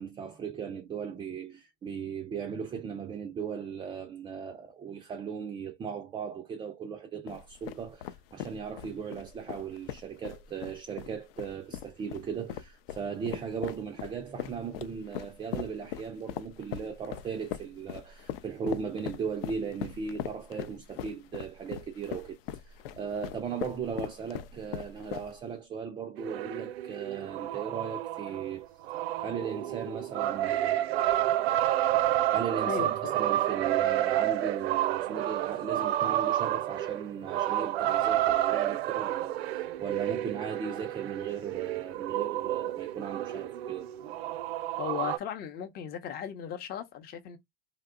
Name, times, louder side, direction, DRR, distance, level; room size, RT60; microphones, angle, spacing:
voice 1, 0.0-28.7 29.2-30.8 32.0-43.9, right 6 dB, 15° right, 0.3 m, -37 dB
sound 1, 7.3-25.6, left 11 dB, 70° left, 0.5 m, -40 dB
sound 2, 26.2-45.2, right 13 dB, 80° right, 0.5 m, -30 dB
voice 2, 32.7-33.1 44.8-47.4, left 8 dB, 30° left, 0.6 m, -36 dB
2.8 x 2.1 x 3.6 m
hypercardioid pair, 105°, 30 cm